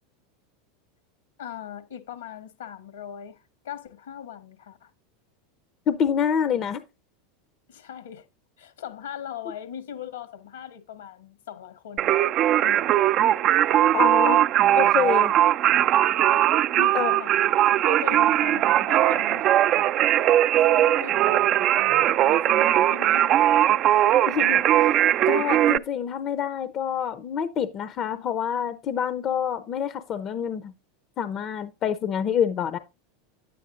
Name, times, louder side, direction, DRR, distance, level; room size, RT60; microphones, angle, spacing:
voice 1, 1.4-4.9 7.7-8.3 8.6-12.2 12.6-12.9 16.8-19.5 20.0-20.1 20.6-21.4 21.8-23.5, left 9 dB, 80° left, 1.6 m, -40 dB
voice 2, 5.9-6.8 13.9-14.4 14.7-15.3 16.9-17.1 24.3-24.6 25.3-30.7 31.2-32.8, left 8 dB, 40° left, 0.7 m, -26 dB
Singing, 12.0-25.8, right 12 dB, 45° right, 0.4 m, -20 dB
9.6 x 8.5 x 2.5 m
hypercardioid pair, 90°, 0 cm